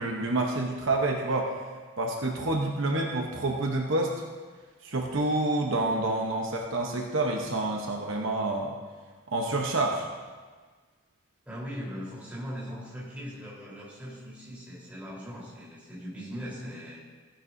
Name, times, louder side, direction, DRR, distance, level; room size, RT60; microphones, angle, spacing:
voice 1, 0.0-1.7 2.0-4.1 4.8-8.8 9.3-10.1, right 2 dB, 60° right, 0 dB, 1.0 m, -28 dB
voice 2, 11.5-17.0, equal, 5° right, -8 dB, 3.8 m, -40 dB
15.5 x 10.0 x 2.7 m, 1.4 s
head